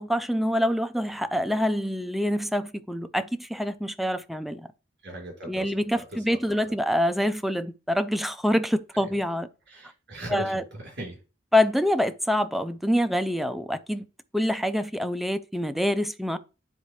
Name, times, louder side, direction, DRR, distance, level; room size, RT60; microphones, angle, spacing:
voice 1, 0.0-4.7 5.5-9.5 10.3-10.6 11.5-14.1 14.3-16.4, equal, ahead, 0.3 m, -26 dB
voice 2, 5.0-6.7 8.9-9.2 9.7-11.2, right 1 dB, 60° right, 3.2 m, -39 dB
9.7 x 3.6 x 3.1 m
head